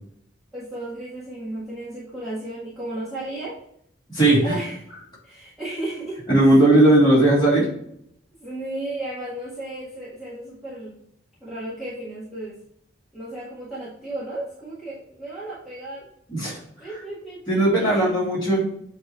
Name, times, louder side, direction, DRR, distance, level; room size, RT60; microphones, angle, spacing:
voice 1, 0.5-3.6 4.4-4.8 5.2-6.2 8.4-10.9 11.4-12.6 13.1-16.0 16.8-18.3, right 1 dB, ahead, -11 dB, 1.5 m, -34 dB
voice 2, 4.1-4.6 6.3-7.7 16.3-16.6 17.5-18.6, right 1 dB, 20° left, -7 dB, 2.6 m, -17 dB
7.5 x 3.1 x 4.3 m, 0.69 s
head